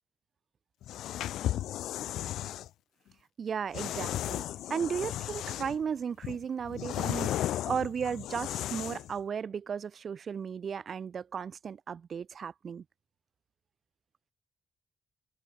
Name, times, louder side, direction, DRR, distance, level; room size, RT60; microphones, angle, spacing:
sound 1, 0.8-2.7 3.7-5.8 6.2-9.1, left 13 dB, 80° left, 0.8 m, -35 dB
voice 1, 3.4-4.4 4.7-7.3 7.7-12.8, right 7 dB, 50° right, 0.3 m, -35 dB
cardioid pair, 90°, 0 cm